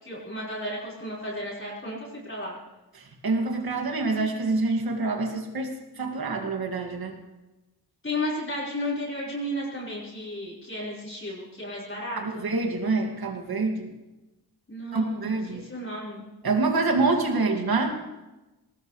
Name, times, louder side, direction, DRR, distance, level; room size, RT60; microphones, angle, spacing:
voice 1, 0.0-2.6 8.0-12.4 14.7-16.3, left 1 dB, 30° left, -7 dB, 5.0 m, -33 dB
voice 2, 3.0-7.2 12.2-13.9 14.9-15.7 16.4-18.0, right 3 dB, 60° right, 3 dB, 2.5 m, -26 dB
20.5 x 18.5 x 3.3 m, 1.1 s
wide cardioid pair, 115°, 40 cm